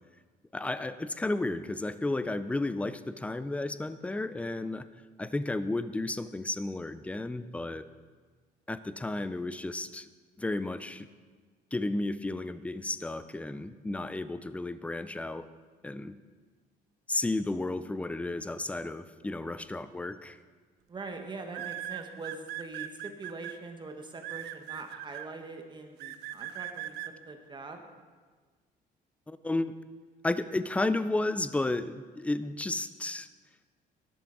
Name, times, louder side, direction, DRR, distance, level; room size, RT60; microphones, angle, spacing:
voice 1, 0.5-4.8 5.2-7.9 8.7-10.1 10.4-11.1 11.7-15.5 15.8-16.1 17.1-20.4 29.3-29.7 30.2-33.3, left 2 dB, 10° left, 13 dB, 0.4 m, -32 dB
sound 1, 20.0-20.3 21.5-23.5 24.2-25.3 26.0-27.1, right 13 dB, 85° right, 0.6 m, -39 dB
voice 2, 20.9-27.8, right 3 dB, 25° right, 4 dB, 1.2 m, -43 dB
12.5 x 11.0 x 3.9 m, 1.4 s
cardioid pair, 110°, 17 cm